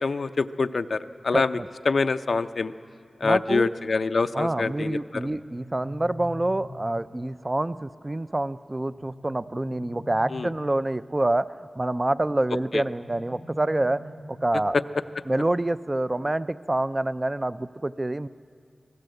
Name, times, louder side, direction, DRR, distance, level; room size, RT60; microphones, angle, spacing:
voice 1, 0.0-1.6 1.9-2.7 3.2-5.2 10.3-10.5 12.7-12.8, left 4 dB, 75° left, 10 dB, 0.6 m, -25 dB
voice 2, 1.3-1.7 3.2-3.7 4.3-11.5 11.8-14.0 14.4-14.8 15.3-18.3, right 1 dB, 30° right, 13 dB, 0.5 m, -27 dB
sound 1, 5.2-7.2 8.9-10.9 12.6-14.6, equal, 80° right, 5.3 m, -44 dB
25.5 x 18.5 x 7.9 m, 2.4 s
wide cardioid pair, 60°, 0 cm